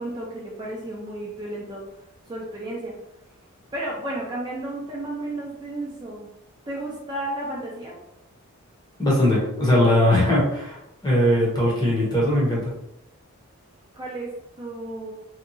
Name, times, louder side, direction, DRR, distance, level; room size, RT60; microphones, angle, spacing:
voice 1, 0.0-1.8 2.3-3.0 3.7-6.3 6.7-8.0 13.9-15.1, right 1 dB, 20° right, -4 dB, 0.4 m, -33 dB
voice 2, 9.0-12.7, left 1 dB, 20° left, -5 dB, 0.8 m, -20 dB
2.7 x 2.2 x 2.6 m, 0.86 s
head